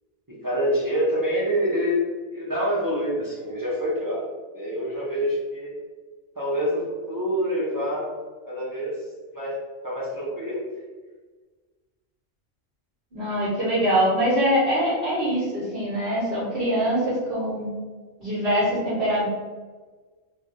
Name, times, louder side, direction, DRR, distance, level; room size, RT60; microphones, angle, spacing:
voice 1, 0.3-2.0 2.3-4.2 4.5-5.7 6.4-8.2 8.4-9.0 9.3-9.6 9.8-10.7, equal, 30° right, -7 dB, 0.4 m, -26 dB
voice 2, 13.1-17.7 18.2-19.3, equal, 45° right, -12 dB, 1.3 m, -23 dB
3.1 x 2.3 x 2.6 m, 1.4 s
omnidirectional pair, 1.3 m